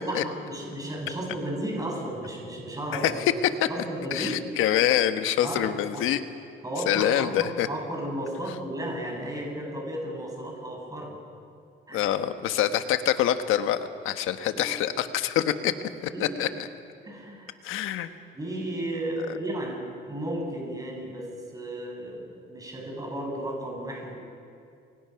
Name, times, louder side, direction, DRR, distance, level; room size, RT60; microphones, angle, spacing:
voice 1, 0.0-3.2 3.7-4.4 5.4-6.0 6.6-11.2 11.9-12.1 14.5-14.6 16.1-16.6 17.0-17.6 18.3-24.2, right 1 dB, 15° right, -1 dB, 7.0 m, -34 dB
voice 2, 4.1-6.2 6.9-7.7 11.9-13.8 14.0-15.7 16.2-16.5 17.6-18.1, left 11 dB, 80° left, 9 dB, 1.3 m, -25 dB
29.0 x 22.5 x 5.9 m, 2.4 s
cardioid pair, 115°, 21 cm